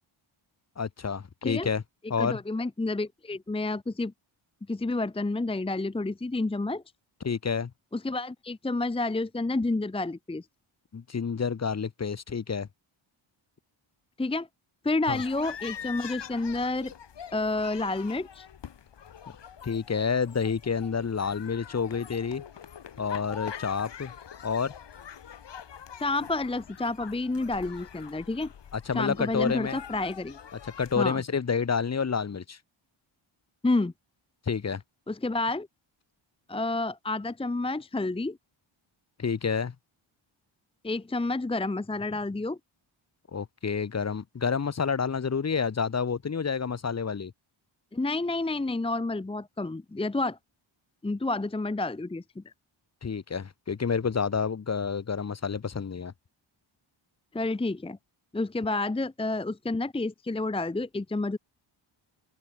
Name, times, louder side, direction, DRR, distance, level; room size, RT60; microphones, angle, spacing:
voice 1, 0.8-1.8 2.1-2.4 7.2-7.7 10.9-12.7 15.1-15.2 19.6-22.4 23.0-24.1 24.4-24.7 28.7-29.8 30.8-32.6 34.5-34.8 39.2-39.7 43.3-47.3 53.0-56.1, left 6 dB, 30° left, 1.6 m, -29 dB
voice 2, 2.2-4.1 4.7-6.8 7.9-10.5 14.2-14.5 14.8-16.9 17.3-18.5 26.0-28.5 28.9-30.4 31.0-31.2 33.6-33.9 35.1-35.7 36.5-38.4 40.8-42.6 47.9-50.4 51.0-52.4 57.3-58.0 58.3-61.4, left 2 dB, 10° left, 0.9 m, -29 dB
sound 1, 15.1-31.0, left 8 dB, 60° left, 4.7 m, -44 dB
open air
wide cardioid pair, 165°, 49 cm